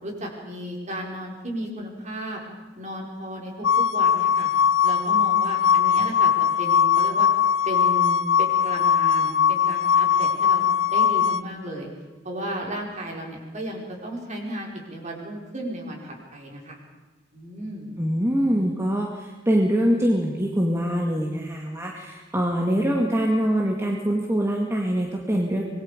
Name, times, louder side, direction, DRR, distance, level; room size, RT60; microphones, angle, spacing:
voice 1, 0.0-2.4 2.8-3.7 3.9-4.5 4.8-6.3 6.6-7.3 7.6-11.9 12.2-16.8 17.3-18.0, right 1 dB, 40° right, -1 dB, 5.0 m, -34 dB
sound 1, 3.6-11.4, left 8 dB, 85° left, 0.7 m, -20 dB
voice 2, 18.0-19.1 19.5-25.6, equal, 15° right, -1 dB, 2.0 m, -23 dB
26.0 x 21.0 x 5.1 m, 1.3 s
head